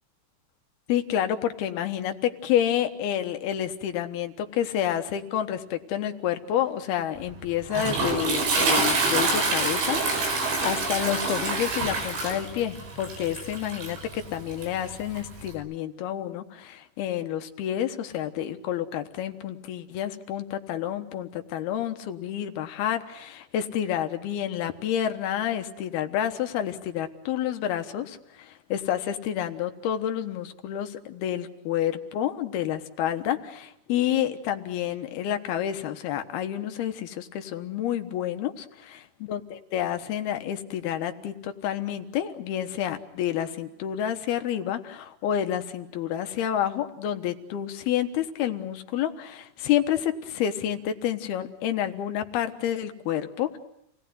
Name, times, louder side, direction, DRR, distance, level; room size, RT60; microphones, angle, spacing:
voice 1, 0.9-53.6, left 10 dB, 70° left, 7 dB, 3.0 m, -29 dB
Toilet flush, 7.2-15.5, right 3 dB, 80° right, 7.1 m, -27 dB
28.5 x 18.0 x 9.5 m, 0.79 s
omnidirectional pair, 5.0 m